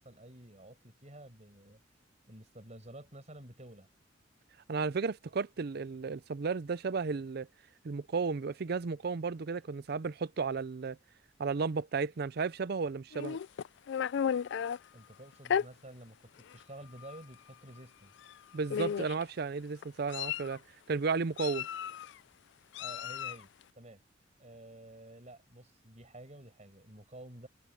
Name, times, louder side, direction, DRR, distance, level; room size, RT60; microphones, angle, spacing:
voice 1, 0.0-1.8 2.3-3.9 14.9-18.1 22.8-24.0 24.4-27.5, right 1 dB, 35° right, 6.2 m, -51 dB
voice 2, 4.7-7.5 7.8-11.0 11.4-13.4 18.5-20.6 20.9-21.7, right 4 dB, 55° right, 0.5 m, -33 dB
Meow, 13.1-14.8 15.4-15.7 16.5-16.6 17.0-17.2 18.2-18.3 18.7-19.2 19.8-20.6 21.4-22.1 22.7-23.4, left 8 dB, 65° left, 0.3 m, -34 dB
head